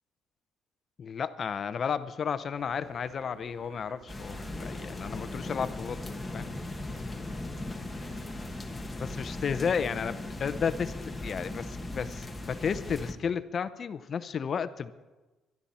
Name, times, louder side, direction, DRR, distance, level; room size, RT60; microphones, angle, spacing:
voice 1, 1.0-6.5 8.6-8.7 9.0-10.9 11.2-14.9, left 6 dB, 40° left, 13 dB, 0.7 m, -33 dB
sound 1, 2.6-8.3, right 4 dB, 75° right, 2.0 m, -54 dB
sound 2, 4.1-13.1, left 2 dB, 10° left, 1.3 m, -38 dB
23.5 x 12.0 x 4.3 m, 1.2 s
cardioid pair, 145°, 0 cm